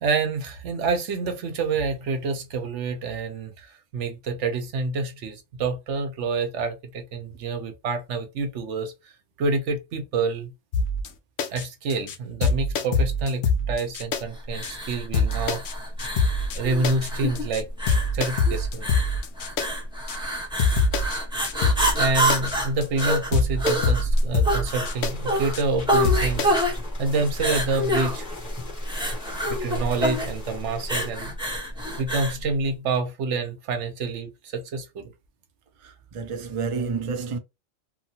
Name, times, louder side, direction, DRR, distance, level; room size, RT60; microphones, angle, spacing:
voice 1, 0.0-8.9 9.4-10.5 11.5-15.6 16.5-17.7 18.1-18.9 22.0-26.5 27.0-28.3 29.5-31.4 32.0-35.1, right 3 dB, 80° right, 1.0 m, -27 dB
sound 1, 10.7-11.1 11.4-11.6 11.9-12.2 12.4-14.2 14.6-14.7 15.1-15.7 16.0-16.6 16.8-17.1 17.4-17.6 17.9-19.7 20.1-20.2 20.6-21.2 21.4-22.0 22.3-22.6 22.8-23.1 23.3-25.1 25.5-25.6 26.0-26.6, left 3 dB, 70° left, 0.8 m, -24 dB
sound 2, 14.5-32.4, equal, 5° right, 0.8 m, -27 dB
sound 3, 24.7-31.1, left 3 dB, 40° left, 1.2 m, -42 dB
voice 2, 35.8-37.4, right 5 dB, 45° right, 0.4 m, -30 dB
2.9 x 2.2 x 2.7 m
omnidirectional pair, 1.2 m